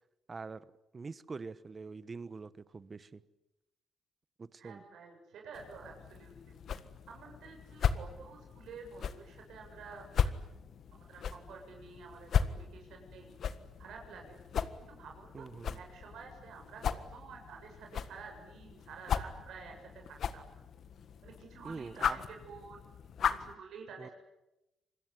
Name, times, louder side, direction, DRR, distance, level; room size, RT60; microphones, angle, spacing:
voice 1, 0.3-3.2 4.4-4.8 15.3-15.8 21.6-22.2 24.0-24.1, right 4 dB, 30° right, 17 dB, 1.2 m, -44 dB
voice 2, 4.6-6.6 7.1-10.0 10.9-13.3 13.8-14.4 14.7-15.4 15.7-20.5 21.2-22.8 23.3-24.1, right 5 dB, 75° right, 1 dB, 7.4 m, -50 dB
sound 1, 5.5-23.5, left 7 dB, 60° left, 1.6 m, -37 dB
27.0 x 21.5 x 9.9 m, 0.96 s
cardioid pair, 90°, 0 cm